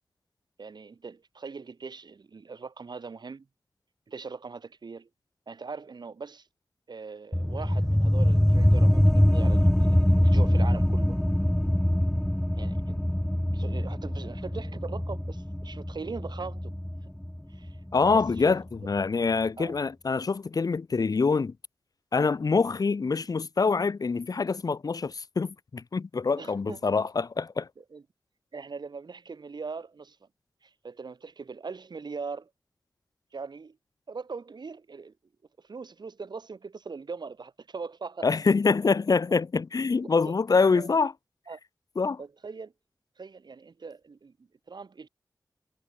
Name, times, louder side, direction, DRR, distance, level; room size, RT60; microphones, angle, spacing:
voice 1, 0.6-3.5 4.1-5.1 5.5-6.5 6.9-11.2 12.6-13.0 13.5-16.7 17.5-18.5 19.6-19.8 26.4-26.8 27.8-28.0 28.5-30.2 30.6-32.5 33.3-33.8 34.1-35.1 35.6-38.3 40.3-40.4 40.7-40.9 41.5-41.6 42.2-42.7 43.2-44.3 44.7-45.1, right 4 dB, 85° right, 6.2 m, -41 dB
sound 1, 7.3-18.4, left 1 dB, 5° left, 0.4 m, -24 dB
voice 2, 17.9-21.5 22.1-27.7 38.2-41.1 42.0-42.2, left 4 dB, 60° left, 0.6 m, -25 dB
wide cardioid pair, 85°, 7 cm